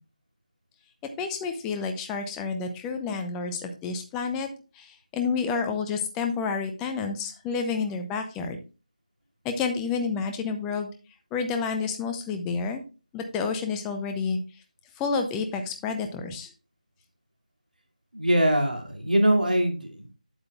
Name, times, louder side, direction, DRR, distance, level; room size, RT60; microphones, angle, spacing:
voice 1, 1.2-4.5 4.8-8.6 9.4-10.9 11.3-12.8 13.1-14.4 15.0-16.5, left 5 dB, 10° left, 5 dB, 0.5 m, -29 dB
voice 2, 18.1-20.2, right 1 dB, 85° right, 1 dB, 2.7 m, -23 dB
8.6 x 7.9 x 2.4 m, 0.33 s
figure-of-eight pair, 165°, 4 cm